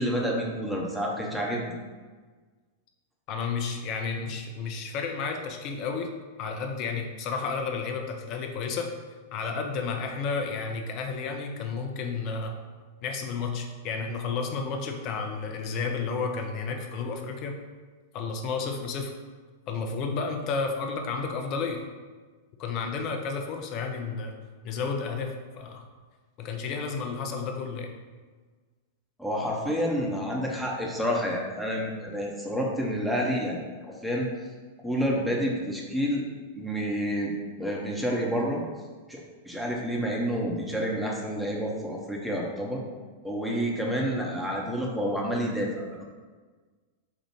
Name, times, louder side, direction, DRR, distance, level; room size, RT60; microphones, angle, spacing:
voice 1, 0.0-1.6 29.2-33.6 33.8-34.3 34.8-36.2 36.5-37.3 37.6-38.6 39.1-39.2 39.4-42.8 43.2-46.0, equal, ahead, -3 dB, 0.9 m, -29 dB
voice 2, 3.3-6.1 6.4-8.9 9.3-12.5 13.0-17.5 18.1-19.1 19.7-21.8 22.6-24.4 24.6-25.8 26.4-27.9, left 5 dB, 40° left, 3 dB, 0.6 m, -31 dB
4.7 x 2.4 x 4.5 m, 1.4 s
figure-of-eight pair, 95°, 0 cm